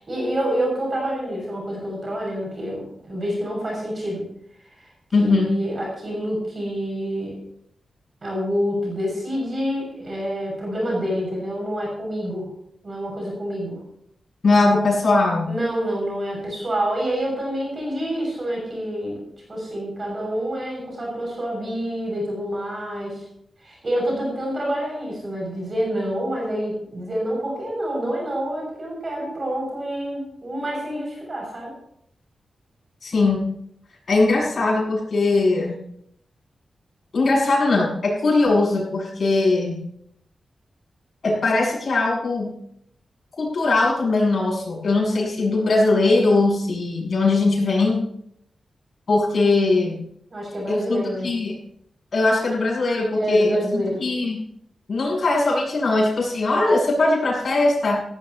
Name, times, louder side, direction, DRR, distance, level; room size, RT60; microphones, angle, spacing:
voice 1, 0.1-4.2 4.8-4.9 5.2-7.3 8.2-12.5 12.8-13.8 15.4-19.2 19.5-23.2 23.6-31.7 50.3-51.4 53.1-54.0, equal, 35° right, -2 dB, 6.7 m, -27 dB
voice 2, 5.1-5.6 14.4-15.6 33.0-33.5 34.1-35.9 37.1-39.9 41.2-42.5 43.4-48.0 49.1-50.0 50.7-51.5 52.1-54.4 54.9-58.0, left 2 dB, 45° left, -3 dB, 7.8 m, -20 dB
18.5 x 16.0 x 3.0 m, 0.72 s
wide cardioid pair, 170°, 0 cm